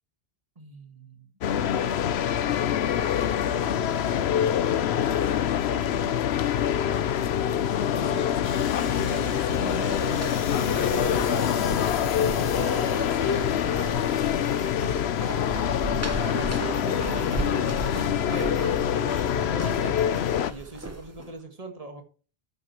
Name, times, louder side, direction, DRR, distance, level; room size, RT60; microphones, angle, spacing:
voice 1, 0.6-1.3 3.2-5.2 8.0-8.3 8.8-11.6 12.2-14.0 16.2-17.9 18.3-20.0 20.5-22.0, right 3 dB, 35° right, 4 dB, 1.8 m, -39 dB
sound 1, 1.4-20.5, left 9 dB, 85° left, 0.9 m, -25 dB
voice 2, 5.7-6.3 7.6-8.3 11.9-13.1, right 1 dB, 35° left, -2 dB, 5.2 m, -47 dB
sound 2, 8.4-17.0, left 7 dB, 55° left, 1.0 m, -42 dB
sound 3, 9.3-21.3, right 2 dB, 15° right, 1.0 m, -38 dB
12.5 x 9.3 x 3.1 m, 0.38 s
omnidirectional pair, 1.1 m